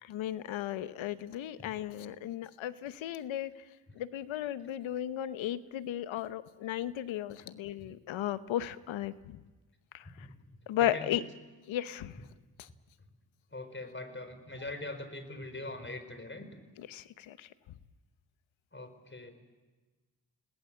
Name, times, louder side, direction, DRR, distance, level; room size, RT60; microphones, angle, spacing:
voice 1, 0.0-3.5 4.0-9.4 9.9-10.3 10.7-11.2 11.7-12.2 12.6-12.7 16.9-17.5, left 12 dB, 80° left, 14 dB, 1.0 m, -35 dB
voice 2, 10.2-11.1 13.5-16.5 18.7-19.3, left 2 dB, 25° left, 9 dB, 4.7 m, -43 dB
30.0 x 19.0 x 7.6 m, 1.3 s
supercardioid pair, 40°, 46 cm